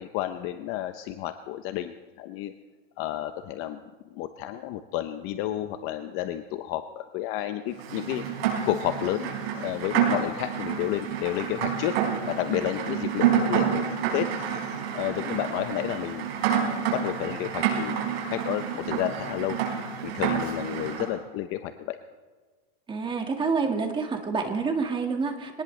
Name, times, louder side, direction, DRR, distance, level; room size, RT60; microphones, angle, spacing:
voice 1, 0.0-2.5 3.0-3.8 4.1-8.2 8.7-12.0 12.3-13.9 14.1-14.3 14.9-16.3 16.9-17.9 18.3-19.6 20.0-22.0, left 13 dB, 45° left, 9 dB, 0.7 m, -31 dB
Rain, 7.8-21.1, right 8 dB, 90° right, 5.0 m, -28 dB
voice 2, 22.9-25.6, right 4 dB, 15° right, 4 dB, 1.8 m, -28 dB
22.5 x 18.5 x 3.3 m, 1.4 s
supercardioid pair, 145°, 30 cm